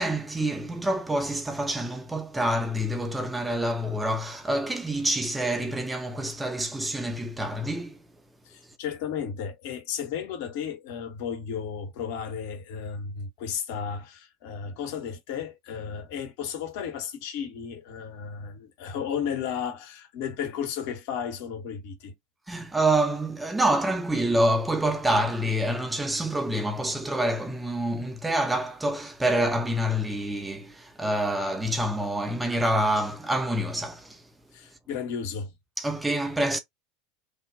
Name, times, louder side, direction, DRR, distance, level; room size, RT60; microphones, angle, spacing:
voice 1, 0.0-8.0 22.5-34.3 35.8-36.6, right 1 dB, 10° right, 0.6 m, -27 dB
voice 2, 8.4-22.1 34.5-35.5, left 7 dB, 60° left, 0.9 m, -34 dB
3.4 x 2.2 x 2.6 m
hypercardioid pair, 80°, 0 cm